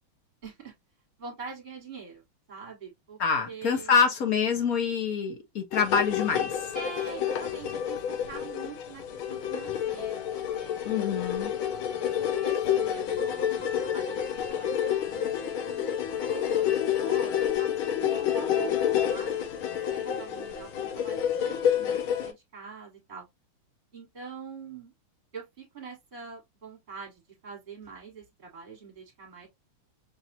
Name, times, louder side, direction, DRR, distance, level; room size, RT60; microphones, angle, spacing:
voice 1, 0.4-0.7 1.2-3.2 3.5-4.0 6.7-8.0 8.3-11.1 12.2-15.9 16.2-18.7 19.1-23.3 23.9-24.9 25.3-29.5, right 5 dB, 25° right, 1.8 m, -44 dB
voice 2, 3.2-6.5 10.8-11.5, left 6 dB, 50° left, 1.3 m, -26 dB
sound 1, 5.7-22.3, left 9 dB, 75° left, 1.6 m, -29 dB
5.9 x 2.7 x 2.7 m
omnidirectional pair, 2.3 m